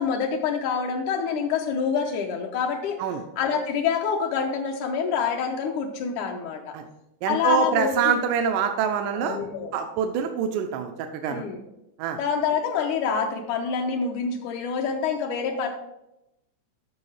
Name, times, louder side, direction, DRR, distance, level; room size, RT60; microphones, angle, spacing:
voice 1, 0.0-3.0 3.4-6.8 7.3-8.1 9.1-9.8 11.2-11.6 12.2-15.7, left 6 dB, 80° left, 1 dB, 2.3 m, -26 dB
voice 2, 7.2-9.4 9.7-11.4 12.0-12.2, right 7 dB, 85° right, 6 dB, 2.2 m, -25 dB
9.5 x 6.4 x 4.9 m, 0.88 s
omnidirectional pair, 3.6 m